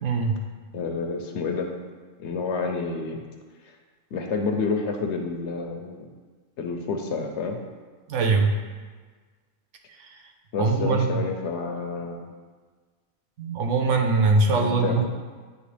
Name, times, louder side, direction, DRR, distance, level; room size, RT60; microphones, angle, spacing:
voice 1, 0.0-0.4 8.1-8.5 10.0-10.1 10.6-11.2 13.4-15.0, right 3 dB, 75° right, 3 dB, 1.0 m, -22 dB
voice 2, 0.7-1.7 2.2-3.2 4.1-6.1 6.6-7.6 10.5-12.2 14.5-15.0, left 4 dB, 70° left, 3 dB, 0.9 m, -29 dB
9.3 x 3.2 x 3.3 m, 1.4 s
omnidirectional pair, 1.3 m